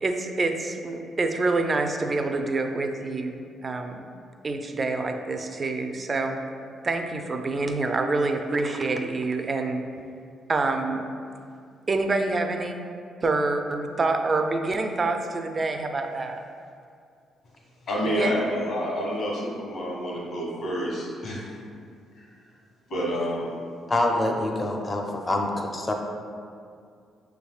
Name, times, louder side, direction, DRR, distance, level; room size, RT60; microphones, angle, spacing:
voice 1, 0.0-3.3 3.6-4.1 4.4-6.4 6.8-9.8 10.5-11.0 11.9-12.8 13.2-16.4 18.1-18.3, right 3 dB, 35° right, 5 dB, 0.4 m, -26 dB
voice 2, 17.9-21.4 22.1-22.3 22.9-23.5, equal, 65° left, -4 dB, 1.5 m, -28 dB
voice 3, 23.9-25.9, left 1 dB, 25° left, 2 dB, 0.5 m, -26 dB
6.0 x 3.4 x 2.3 m, 2.3 s
cardioid pair, 90°, 0 cm